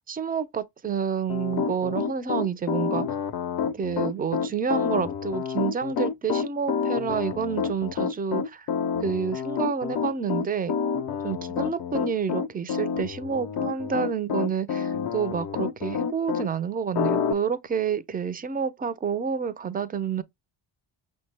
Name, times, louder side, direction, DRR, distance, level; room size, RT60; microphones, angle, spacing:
voice 1, 0.1-3.1 3.7-8.7 9.0-10.8 11.2-20.2, right 6 dB, 20° right, 0.4 m, -29 dB
Piano, 1.3-16.5 16.9-17.3, left 6 dB, 50° left, 0.5 m, -28 dB
5.7 x 2.2 x 3.2 m
cardioid pair, 90°, 49 cm